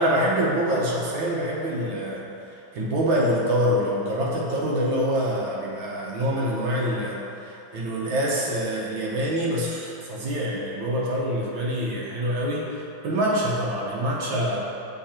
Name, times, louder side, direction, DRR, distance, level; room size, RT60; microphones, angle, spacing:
voice 1, 0.0-2.3 2.7-14.7, equal, 80° right, -4 dB, 1.8 m, -25 dB
6.3 x 4.1 x 4.4 m, 2.9 s
omnidirectional pair, 2.2 m